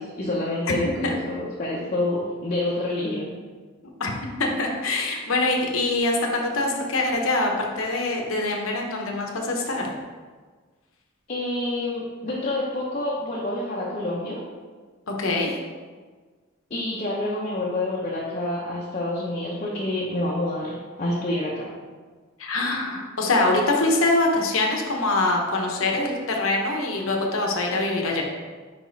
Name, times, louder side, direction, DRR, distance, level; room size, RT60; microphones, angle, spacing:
voice 1, 0.0-3.3 11.3-14.4 16.7-21.7, left 1 dB, 35° left, -6 dB, 0.8 m, -28 dB
voice 2, 4.4-9.9 15.1-15.5 22.4-28.2, left 2 dB, 65° left, 0 dB, 1.0 m, -24 dB
5.1 x 5.1 x 4.0 m, 1.5 s
head